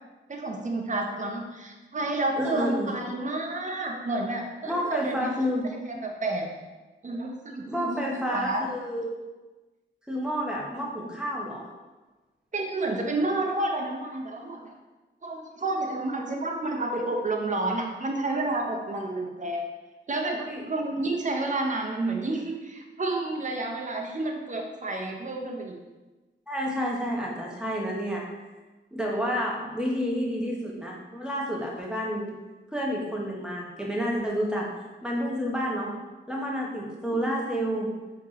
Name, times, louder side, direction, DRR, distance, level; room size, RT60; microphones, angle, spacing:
voice 1, 0.3-5.3 5.9-6.5 7.0-8.6 12.5-14.7 15.2-19.7 20.1-20.4 20.7-25.8 37.3-37.4, right 2 dB, 40° right, 1 dB, 0.7 m, -30 dB
voice 2, 2.4-2.9 4.7-5.7 7.7-9.1 10.1-11.7 18.8-18.9 20.3-20.6 26.5-28.2 28.9-32.3 32.7-34.7 35.0-35.9 36.3-37.9, equal, 5° right, -3 dB, 1.0 m, -29 dB
4.6 x 2.9 x 3.6 m, 1.2 s
wide cardioid pair, 80°, 20 cm